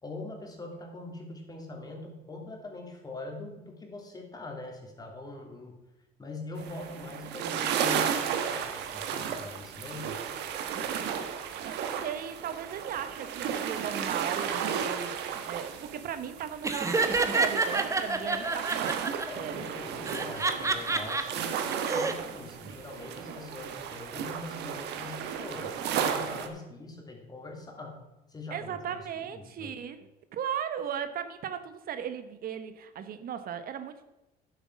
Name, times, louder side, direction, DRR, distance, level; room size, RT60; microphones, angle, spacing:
voice 1, 0.0-5.8 6.2-10.2 19.2-28.0 28.3-29.7, left 2 dB, 25° left, 1 dB, 2.8 m, -42 dB
sound 1, 6.6-26.5, right 8 dB, 85° right, 1.4 m, -34 dB
voice 2, 11.6-19.6 28.5-34.0, right 8 dB, 60° right, 10 dB, 1.0 m, -37 dB
Laughter, 16.6-19.2 20.1-21.2 21.7-22.1, right 3 dB, 20° right, 1.1 m, -28 dB
10.0 x 8.0 x 6.1 m, 1.0 s
cardioid pair, 110°, 17 cm